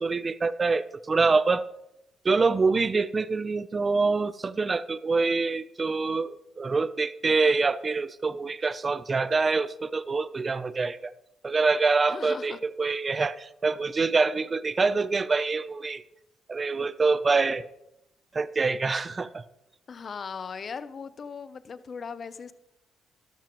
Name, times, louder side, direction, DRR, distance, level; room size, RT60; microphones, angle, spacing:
voice 1, 0.0-1.6 2.2-11.1 11.4-16.0 16.5-17.6 18.3-19.4, right 4 dB, 30° right, 15 dB, 0.6 m, -25 dB
voice 2, 12.1-12.6 19.9-22.5, left 5 dB, 45° left, 13 dB, 0.7 m, -38 dB
13.0 x 12.0 x 3.1 m, 0.86 s
cardioid pair, 90°, 0 cm